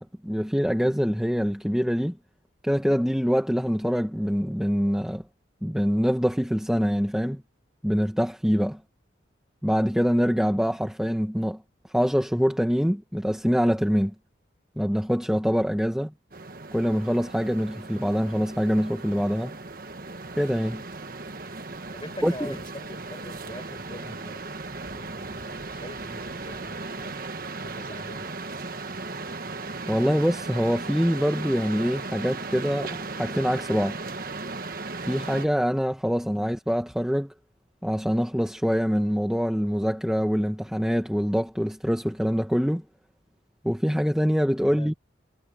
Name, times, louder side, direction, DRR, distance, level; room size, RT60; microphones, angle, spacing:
voice 1, 0.0-2.2 2.6-5.2 5.6-7.4 7.8-8.8 9.6-11.6 11.9-14.1 14.8-16.1 16.7-19.5 20.4-20.8 22.2-22.6 29.9-34.0 35.1-37.3 37.8-42.8 43.6-44.9, equal, 5° right, 1.3 m, -24 dB
sound 1, 16.3-35.5, right 3 dB, 50° right, 1.4 m, -37 dB
voice 2, 21.9-24.4 24.8-27.2 27.6-28.3 36.2-36.4 44.7-44.9, left 1 dB, 25° left, 6.9 m, -43 dB
head